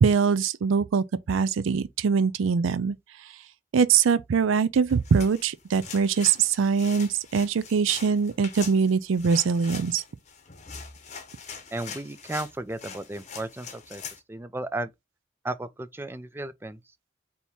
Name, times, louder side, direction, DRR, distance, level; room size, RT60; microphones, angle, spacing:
voice 1, 0.0-3.0 3.7-10.0, right 6 dB, 80° right, 0.4 m, -23 dB
sound 1, 4.9-14.2, left 6 dB, 35° left, 0.8 m, -42 dB
voice 2, 11.7-14.0 14.3-14.9 15.4-16.8, right 2 dB, 10° right, 0.3 m, -34 dB
4.4 x 2.8 x 3.4 m
head